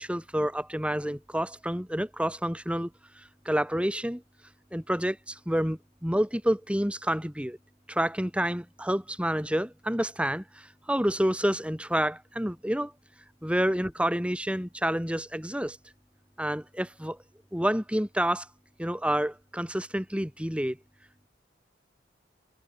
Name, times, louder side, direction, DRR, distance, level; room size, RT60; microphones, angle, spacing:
voice 1, 0.0-2.9 3.2-4.2 4.7-7.6 7.9-12.9 13.4-15.8 16.4-17.2 17.5-18.5 18.8-20.8, equal, 5° right, 6.8 m, -29 dB
head